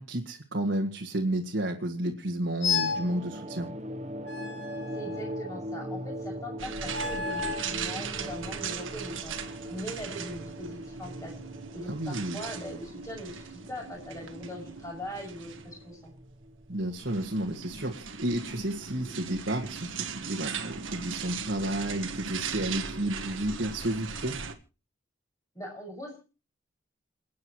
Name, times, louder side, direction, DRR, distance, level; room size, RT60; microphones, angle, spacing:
voice 1, 0.0-3.7 11.9-12.4 16.7-24.4, right 1 dB, 70° right, 1 dB, 1.9 m, -31 dB
sound 1, 2.6-3.1 4.3-5.5 6.9-7.7, left 5 dB, 65° left, 2.4 m, -32 dB
sound 2, 2.6-17.5, equal, 35° right, 0.9 m, -41 dB
voice 2, 4.9-9.4 9.7-11.4 11.7-16.1 25.5-26.2, equal, 15° left, 1 dB, 6.2 m, -40 dB
sound 3, 6.6-24.5, right 6 dB, 85° right, 1.6 m, -39 dB
28.0 x 9.4 x 3.1 m, 0.33 s
head